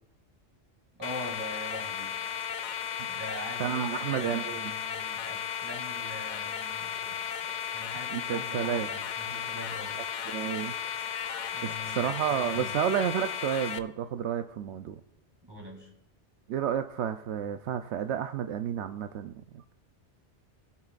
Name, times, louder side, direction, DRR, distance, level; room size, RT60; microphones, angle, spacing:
sound 1, 1.0-13.8, left 8 dB, 55° left, 0.5 m, -35 dB
voice 1, 1.0-2.2 3.1-7.2 7.7-10.0 11.5-12.7 15.5-15.9, left 1 dB, 20° right, 0 dB, 2.9 m, -42 dB
voice 2, 3.6-4.7 8.1-8.9 10.2-10.8 12.0-15.0 16.5-19.8, right 9 dB, 80° right, 8 dB, 0.9 m, -31 dB
21.0 x 8.6 x 2.5 m, 0.87 s
omnidirectional pair, 1.2 m